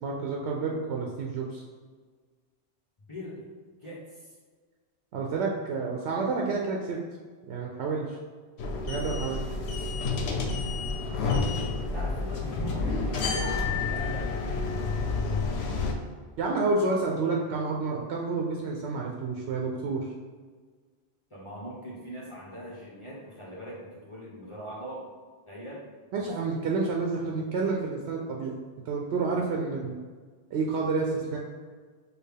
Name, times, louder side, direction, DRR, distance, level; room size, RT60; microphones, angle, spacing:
voice 1, 0.0-1.6 5.1-7.0 7.4-8.2 8.9-9.4 16.4-20.1 26.1-28.6 28.9-30.0 30.5-31.4, right 4 dB, 85° right, -1 dB, 0.8 m, -29 dB
voice 2, 3.1-3.4 3.8-4.3 11.1-15.9 21.3-25.1 25.5-25.8, equal, 30° left, -7 dB, 0.8 m, -42 dB
sound 1, 8.6-15.9, left 4 dB, 75° left, 0.9 m, -29 dB
sound 2, 11.9-15.6, right 1 dB, ahead, 0.6 m, -41 dB
6.3 x 2.3 x 3.4 m, 1.5 s
omnidirectional pair, 1.1 m